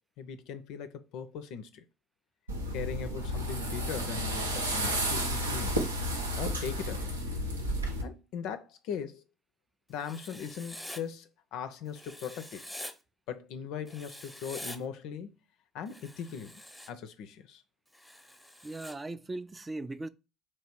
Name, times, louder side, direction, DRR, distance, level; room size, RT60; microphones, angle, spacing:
voice 1, 0.2-1.8 2.7-5.8 6.4-7.2 8.0-9.2 9.9-12.6 13.3-15.3 15.7-16.6 16.9-17.6, left 7 dB, 60° left, 0.4 m, -39 dB
sound 1, 2.5-8.0, equal, 85° right, 0.6 m, -32 dB
Writing, 10.0-11.0 11.9-12.9 13.9-14.8 15.9-16.9 17.9-18.9, equal, ahead, 0.7 m, -45 dB
voice 2, 18.6-20.1, right 2 dB, 20° right, 0.3 m, -38 dB
3.3 x 3.1 x 4.4 m
figure-of-eight pair, 55°, 0 cm